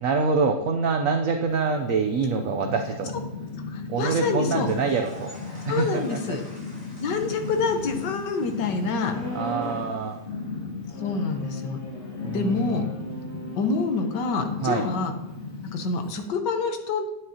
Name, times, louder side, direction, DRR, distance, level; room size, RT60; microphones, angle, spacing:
voice 1, 0.0-3.1 3.9-5.3 5.6-6.4 9.3-10.2 12.2-12.8 14.6-14.8, right 4 dB, 60° right, 5 dB, 0.9 m, -25 dB
Purr, 1.5-16.3, left 4 dB, 40° left, 2.2 m, -36 dB
voice 2, 3.7-4.7 5.7-6.4 7.0-9.2 11.0-11.8 12.3-12.8 13.6-15.1 15.7-17.1, left 4 dB, 90° left, 6 dB, 1.6 m, -27 dB
sound 1, 4.5-10.5, equal, 20° left, 3.5 m, -49 dB
sound 2, 9.0-10.0 10.9-14.5, right 1 dB, 55° left, 3.0 m, -38 dB
9.6 x 8.9 x 2.8 m, 0.98 s
omnidirectional pair, 1.8 m